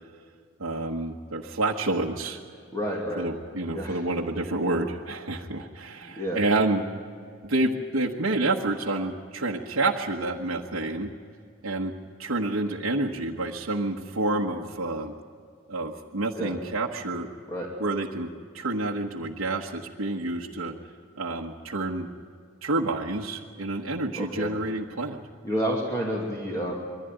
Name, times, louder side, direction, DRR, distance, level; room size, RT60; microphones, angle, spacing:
voice 1, 0.6-2.4 3.2-6.8 7.4-11.1 11.6-11.9 12.2-15.1 15.7-17.3 17.8-18.3 18.5-20.7 21.2-22.1 22.6-25.2, right 2 dB, 85° right, -1 dB, 1.3 m, -28 dB
voice 2, 2.7-3.2 3.7-4.0 6.0-6.4 16.4-16.6 17.5-17.7 24.2-24.5 25.4-26.7, equal, 15° left, -3 dB, 2.6 m, -29 dB
22.5 x 15.0 x 9.2 m, 2.2 s
head